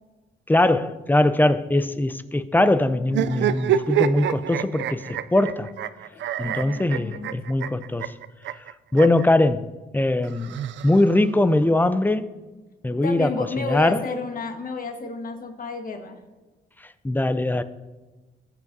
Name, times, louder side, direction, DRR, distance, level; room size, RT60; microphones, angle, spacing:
voice 1, 0.5-5.7 6.4-8.1 8.9-9.6 9.9-10.6 10.8-12.3 12.8-13.3 13.6-14.0 17.0-17.6, left 1 dB, 10° left, 0.5 m, -21 dB
sound 1, 3.1-9.3 10.2-11.4, right 10 dB, 70° right, 0.4 m, -27 dB
voice 2, 6.1-7.3 12.9-16.2, left 4 dB, 45° left, 1.5 m, -32 dB
19.5 x 7.3 x 2.7 m
cardioid pair, 90°, 20 cm